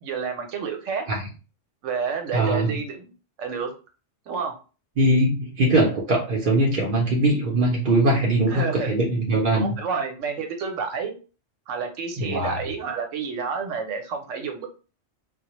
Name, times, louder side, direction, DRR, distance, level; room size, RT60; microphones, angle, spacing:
voice 1, 0.0-1.0 1.8-3.1 3.4-3.7 4.3-4.6 8.5-8.9 9.5-11.1 11.7-14.7, right 5 dB, 80° right, 4 dB, 0.9 m, -29 dB
voice 2, 2.3-2.8 5.0-9.8 12.2-12.6, right 1 dB, 55° right, -2 dB, 0.6 m, -21 dB
2.2 x 2.0 x 2.9 m, 0.34 s
omnidirectional pair, 1.3 m